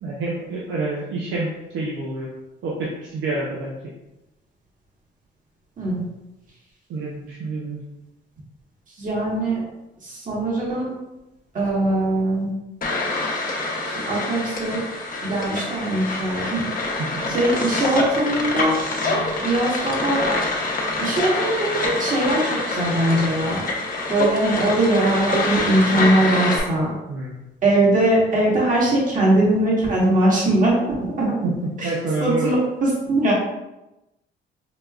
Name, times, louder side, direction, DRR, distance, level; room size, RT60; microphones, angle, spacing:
voice 1, 0.0-2.3 2.6-3.9 6.9-7.8 17.0-17.2 27.1-27.3 31.4-32.5, right 2 dB, 75° right, -5 dB, 0.7 m, -27 dB
voice 2, 9.0-9.6 10.0-10.9 11.5-12.5 14.1-14.8 15.2-16.6 17.3-18.8 19.4-20.2 21.0-23.6 24.1-26.9 27.6-30.7 31.2-31.3 32.2-33.3, right 1 dB, 40° right, -5 dB, 1.3 m, -21 dB
sound 1, 12.8-26.6, left 2 dB, 45° left, 0.9 m, -25 dB
5.1 x 2.2 x 2.4 m, 0.96 s
cardioid pair, 90°, 20 cm